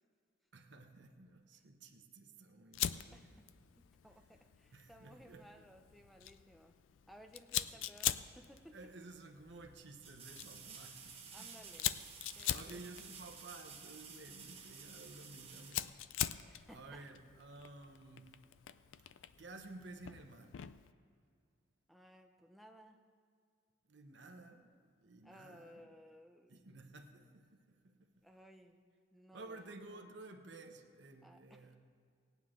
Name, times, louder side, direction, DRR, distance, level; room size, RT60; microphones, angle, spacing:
voice 1, 0.5-3.2 4.7-5.4 7.6-7.9 8.7-11.8 12.5-16.0 16.7-18.4 19.0-19.1 19.4-20.6 23.9-25.9 26.5-28.1 29.3-31.8, right 2 dB, 60° right, 5 dB, 0.9 m, -54 dB
Fire, 2.7-20.9, left 12 dB, 75° left, 0.4 m, -44 dB
voice 2, 3.8-6.8 7.1-8.8 11.3-11.9 12.3-12.8 16.5-17.1 21.9-23.0 25.2-26.6 28.2-28.8 29.1-29.7 31.2-31.7, equal, ahead, 5 dB, 0.5 m, -59 dB
sound 1, 8.6-8.7 10.0-16.6 19.5-19.6, right 6 dB, 30° right, 1.1 m, -53 dB
17.5 x 9.4 x 3.7 m, 2.2 s
head